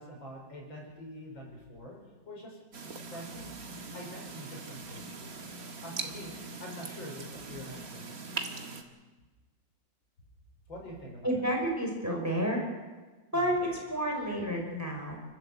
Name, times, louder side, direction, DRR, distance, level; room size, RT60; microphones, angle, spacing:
voice 1, 0.0-2.0 2.3-2.6 2.9-3.5 3.9-5.3 5.8-8.1 10.7-11.3 13.3-13.6, equal, 85° left, -1 dB, 6.3 m, -45 dB
sound 1, 2.7-8.8, right 3 dB, 50° right, 2.2 m, -41 dB
voice 2, 11.2-12.6 13.3-15.2, equal, 10° right, 0 dB, 5.0 m, -30 dB
29.5 x 12.0 x 8.2 m, 1.3 s
omnidirectional pair, 2.1 m